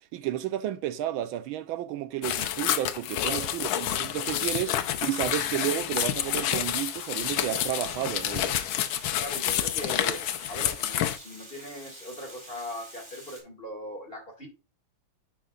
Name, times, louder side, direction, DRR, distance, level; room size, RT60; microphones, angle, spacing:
voice 1, 0.1-8.6, right 12 dB, 85° right, 1.5 m, -32 dB
sound 1, 2.2-11.2, left 11 dB, 85° left, 1.5 m, -29 dB
Water, 6.1-13.4, right 1 dB, 15° right, 2.4 m, -48 dB
voice 2, 9.2-10.2 10.5-14.5, left 1 dB, 30° left, 2.2 m, -39 dB
10.0 x 4.8 x 2.4 m
omnidirectional pair, 2.1 m